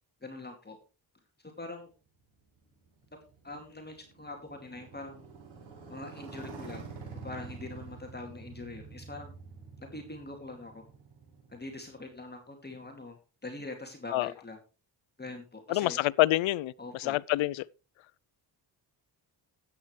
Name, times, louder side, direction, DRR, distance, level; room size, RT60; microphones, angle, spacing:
voice 1, 0.2-0.8 1.4-1.9 3.4-5.2 5.9-6.9 7.2-9.3 9.8-10.8 11.5-13.2 13.4-14.6 15.2-16.0 16.8-17.2, left 2 dB, 20° left, 2.3 m, -43 dB
Motorcycle, 2.3-12.2, right 4 dB, 85° right, 6.7 m, -47 dB
voice 2, 15.7-17.6, left 17 dB, 85° left, 0.6 m, -27 dB
13.0 x 9.3 x 3.2 m
cardioid pair, 90°, 45 cm